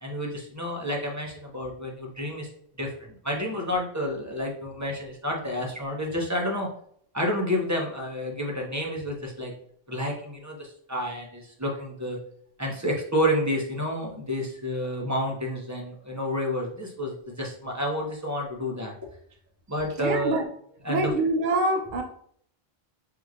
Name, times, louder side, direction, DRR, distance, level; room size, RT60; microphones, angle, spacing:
voice 1, 0.0-2.5 2.8-2.9 3.2-6.7 7.1-9.5 9.9-12.2 12.6-18.9 19.7-20.4 20.8-21.1, equal, 20° right, -1 dB, 0.6 m, -29 dB
voice 2, 20.0-20.4 20.9-22.0, right 2 dB, 55° right, 3 dB, 0.8 m, -25 dB
6.1 x 2.8 x 2.4 m, 0.64 s
omnidirectional pair, 1.0 m